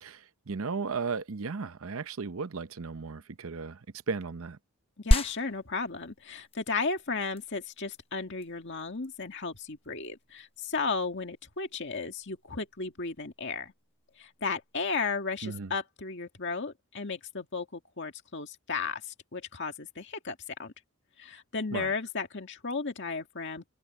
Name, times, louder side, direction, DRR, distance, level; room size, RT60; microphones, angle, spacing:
voice 1, 0.0-3.8 4.1-4.6 15.4-15.7 21.7-21.9, right 4 dB, 65° right, 0.7 m, -35 dB
voice 2, 5.0-13.7 14.2-20.7 21.2-23.7, left 4 dB, 55° left, 2.0 m, -34 dB
sound 1, 5.1-15.1, left 1 dB, 25° left, 0.9 m, -35 dB
head